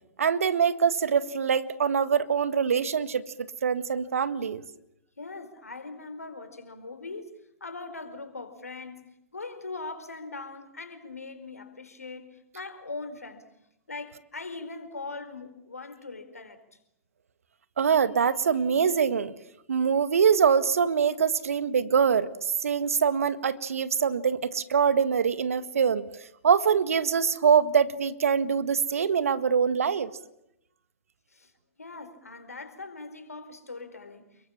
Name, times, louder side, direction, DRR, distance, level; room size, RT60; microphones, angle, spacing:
voice 1, 0.2-4.6 17.8-19.3 19.7-26.1 26.4-30.1, right 7 dB, 70° right, 1.7 m, -24 dB
voice 2, 5.2-9.0 9.3-13.5 13.9-16.6 31.3-31.5 31.8-34.5, left 3 dB, 80° left, 4.7 m, -41 dB
29.5 x 22.5 x 7.4 m
figure-of-eight pair, 110°, 8 cm